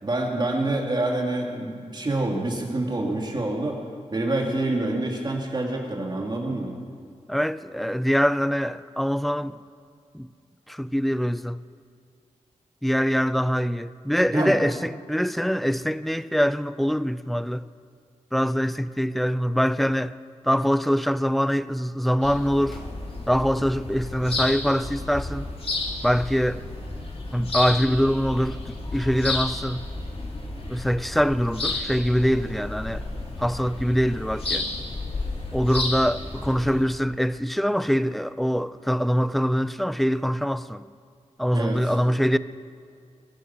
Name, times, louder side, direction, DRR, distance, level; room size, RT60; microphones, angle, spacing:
voice 1, 0.0-3.8 4.1-6.7 14.2-14.5 41.5-42.0, right 2 dB, 35° right, 2.9 m, -27 dB
voice 2, 7.3-9.6 10.1-10.3 10.7-11.6 12.8-17.6 18.3-20.1 20.4-22.8 23.3-25.5 26.0-26.6 27.3-29.8 30.7-33.0 33.4-34.6 35.5-40.8 41.4-42.4, equal, ahead, 0.5 m, -24 dB
sound 1, 22.2-36.8, left 2 dB, 50° left, 2.8 m, -32 dB
22.0 x 9.5 x 6.1 m
cardioid pair, 70°, 13 cm